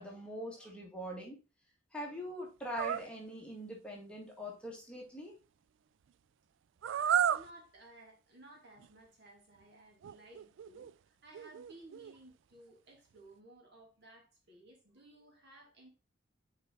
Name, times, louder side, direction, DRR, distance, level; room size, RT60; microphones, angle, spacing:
voice 1, 0.0-1.4 1.9-5.4, equal, 5° left, 2.0 m, -43 dB
sound 1, 2.8-3.1 6.8-7.5 8.8-8.9 10.0-10.9 11.3-12.1, right 9 dB, 75° right, 0.3 m, -32 dB
voice 2, 7.3-10.9 11.2-15.9, right 1 dB, 60° right, 2.6 m, -57 dB
6.7 x 4.7 x 3.8 m
head